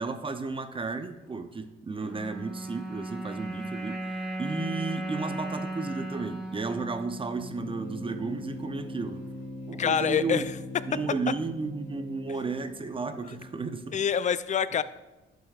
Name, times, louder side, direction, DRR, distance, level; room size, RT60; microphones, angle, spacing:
voice 1, 0.0-4.0 4.4-9.2 9.7-10.4 10.9-14.0, right 4 dB, 25° right, 9 dB, 0.6 m, -33 dB
sound 1, 2.0-8.4, right 1 dB, 5° right, 2.9 m, -36 dB
sound 2, 7.4-14.0, left 1 dB, 75° left, 2.0 m, -41 dB
voice 2, 9.8-10.4 13.9-14.8, left 7 dB, 40° left, 15 dB, 0.4 m, -25 dB
11.5 x 7.7 x 2.4 m, 1.1 s
cardioid pair, 90°, 20 cm